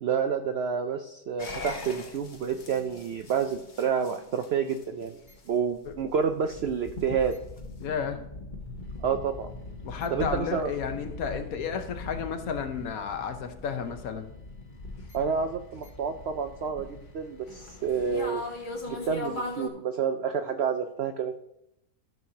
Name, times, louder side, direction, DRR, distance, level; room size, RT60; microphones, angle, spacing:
voice 1, 0.0-5.2 5.5-7.3 9.0-9.5 10.1-10.7 15.1-16.9 17.1-18.4 18.8-21.4, right 6 dB, 75° right, 7 dB, 0.6 m, -29 dB
sound 1, 1.4-19.7, left 2 dB, 35° left, 1.0 m, -41 dB
voice 2, 7.8-8.2 9.8-14.3, left 6 dB, 70° left, 7 dB, 1.2 m, -32 dB
13.5 x 6.3 x 2.8 m, 0.81 s
omnidirectional pair, 1.6 m